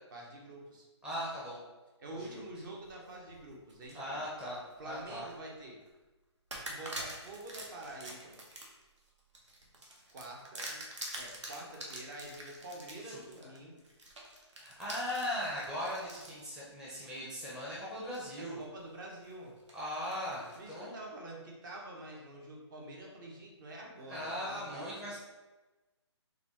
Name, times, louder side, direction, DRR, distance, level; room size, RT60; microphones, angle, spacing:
voice 1, 0.1-0.9 2.0-4.2 4.8-5.8 6.7-8.4 9.7-10.8 11.2-13.8 18.4-19.5 20.5-24.9, right 1 dB, 45° right, -1 dB, 1.0 m, -47 dB
voice 2, 1.0-1.6 2.1-2.4 3.9-5.3 13.0-13.2 14.6-18.6 19.7-20.9 24.1-25.2, left 1 dB, 5° right, -8 dB, 0.6 m, -39 dB
sound 1, 2.6-3.9 4.4-5.4 5.8-5.9 6.5-16.4 17.0-17.1 18.1-18.6 19.0-20.7, right 1 dB, 75° right, 1.1 m, -46 dB
4.1 x 3.5 x 3.0 m, 1.1 s
figure-of-eight pair, 145°, 15 cm